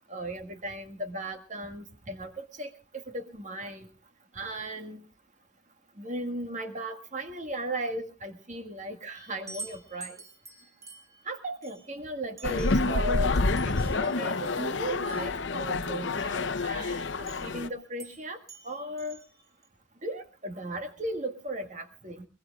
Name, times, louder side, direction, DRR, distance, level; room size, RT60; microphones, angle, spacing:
voice 1, 0.1-3.9 4.3-5.0 6.0-10.2 11.3-18.4 18.6-19.2 20.0-22.3, right 1 dB, 40° right, 6 dB, 1.8 m, -36 dB
sound 1, 9.1-16.1 17.3-17.6 18.0-18.2 18.5-19.7, right 3 dB, 15° right, 3.0 m, -48 dB
sound 2, 12.4-17.7, left 3 dB, 75° left, 0.9 m, -28 dB
22.5 x 21.5 x 2.4 m, 0.33 s
head